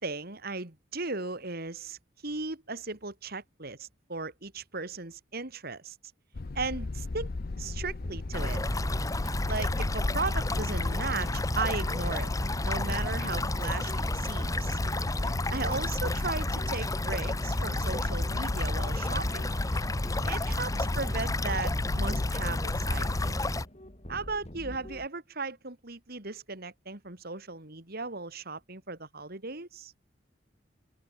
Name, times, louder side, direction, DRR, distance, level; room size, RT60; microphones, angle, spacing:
voice 1, 0.0-2.0 2.2-5.9 6.5-7.3 7.6-8.6 9.5-12.3 12.6-14.8 15.5-19.5 20.2-23.1 24.1-29.9, right 3 dB, 55° right, 3.1 m, -36 dB
sound 1, 6.3-23.3, left 3 dB, 50° left, 0.6 m, -36 dB
sound 2, 7.5-25.1, equal, 35° left, 5.1 m, -44 dB
sound 3, 8.3-23.7, left 1 dB, 15° left, 1.4 m, -31 dB
head